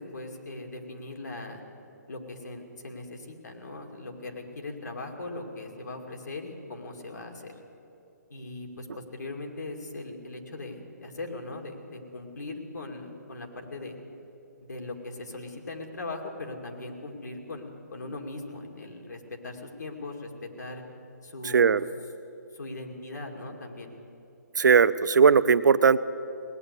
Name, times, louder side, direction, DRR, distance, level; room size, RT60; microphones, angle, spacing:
voice 1, 0.0-1.6 2.1-7.5 8.3-14.0 14.6-20.3 20.6-20.8 21.2-21.8 22.5-23.9, left 2 dB, 70° left, 2 dB, 2.3 m, -39 dB
voice 2, 24.6-26.0, right 6 dB, 85° right, 15 dB, 0.5 m, -19 dB
18.5 x 9.6 x 8.2 m, 2.7 s
hypercardioid pair, 180°, 10 cm